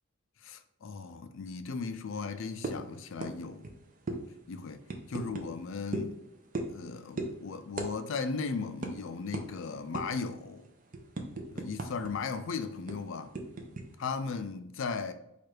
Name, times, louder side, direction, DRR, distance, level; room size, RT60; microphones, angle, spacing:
voice 1, 0.4-3.7 4.5-4.8 5.1-6.2 6.7-10.6 11.5-13.3 14.0-15.1, left 4 dB, 60° left, 0.4 m, -36 dB
sound 1, 2.6-2.9 3.2-3.4 3.6-3.8 4.1-4.2 4.9-5.5 5.9-6.1 6.5-6.8 7.2-7.3 7.8-7.9 8.2-8.4 8.8-8.9 9.3-9.5 9.9-10.2 10.6-12.1 12.4-12.5 12.9-13.8, right 2 dB, 40° right, 0.5 m, -36 dB
4.7 x 2.4 x 4.5 m
head